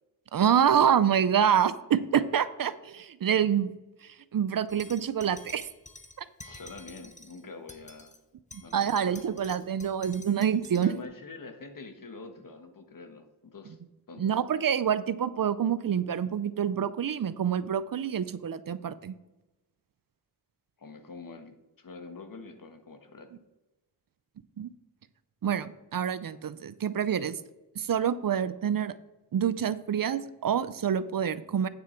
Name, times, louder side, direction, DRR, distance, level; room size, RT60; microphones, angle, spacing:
voice 1, 0.3-3.7 4.3-5.7 8.7-10.9 14.2-19.1 24.6-24.7 25.4-27.4 27.8-28.9 29.3-31.7, right 8 dB, 55° right, 15 dB, 0.5 m, -27 dB
sound 1, 4.7-7.4 7.7-8.2 8.5-11.0, left 2 dB, 20° left, 1.0 m, -50 dB
voice 2, 6.4-8.1 8.6-9.3 10.8-13.8 14.1-14.4 20.8-23.3, left 3 dB, 50° left, 7 dB, 1.4 m, -45 dB
8.9 x 6.9 x 4.4 m, 1.0 s
wide cardioid pair, 85°, 41 cm